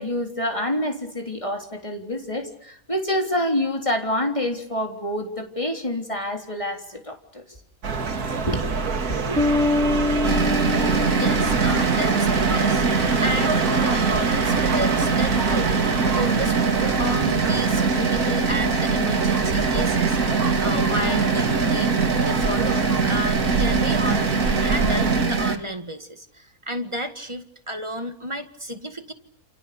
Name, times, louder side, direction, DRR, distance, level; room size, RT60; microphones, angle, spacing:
voice 1, 0.0-7.4 8.5-8.6 9.3-9.5, left 1 dB, 20° left, 3 dB, 3.6 m, -27 dB
sound 1, 7.8-25.3, right 4 dB, 90° right, 2.4 m, -26 dB
sound 2, 9.4-12.7, left 2 dB, 45° right, 2.1 m, -25 dB
sound 3, 10.2-25.6, right 4 dB, 65° right, 2.7 m, -23 dB
voice 2, 11.2-12.8 13.2-24.3 24.6-29.1, equal, 20° right, 7 dB, 1.8 m, -32 dB
29.0 x 28.5 x 7.0 m, 0.69 s
omnidirectional pair, 1.6 m